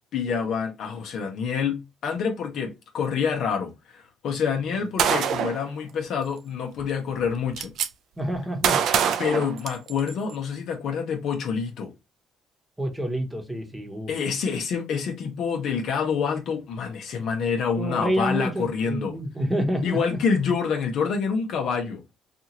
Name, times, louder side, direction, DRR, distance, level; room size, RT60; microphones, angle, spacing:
voice 1, 0.1-7.7 9.2-11.9 14.1-19.2 19.8-22.0, left 6 dB, 65° left, 0.9 m, -27 dB
Gunshot gunfire, 5.0-5.6 6.8-6.9 7.2-7.9 8.6-10.1, right 8 dB, 65° right, 0.4 m, -24 dB
voice 2, 8.2-8.8 12.8-14.1 17.8-20.0, equal, 10° right, 1.0 m, -28 dB
2.7 x 2.5 x 2.8 m
supercardioid pair, 70°, 0 cm